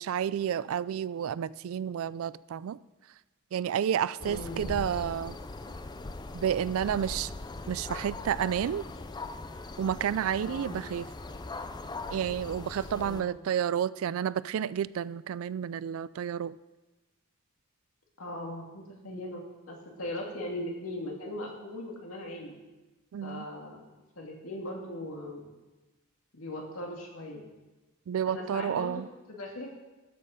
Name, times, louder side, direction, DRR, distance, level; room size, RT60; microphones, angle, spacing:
voice 1, 0.0-2.8 3.5-5.4 6.3-7.3 7.7-8.9 9.8-11.0 12.1-16.5 23.1-23.4 28.1-29.1, right 8 dB, 75° right, 19 dB, 0.3 m, -30 dB
voice 2, 4.2-4.9 10.4-10.9 12.9-13.4 18.2-22.6 23.2-23.9 24.2-25.5 26.3-27.5 28.2-29.0 29.3-29.7, left 1 dB, 85° left, 0 dB, 2.3 m, -39 dB
sound 1, 4.2-13.2, left 2 dB, 20° left, 0.4 m, -40 dB
13.0 x 6.6 x 5.0 m, 1.1 s
head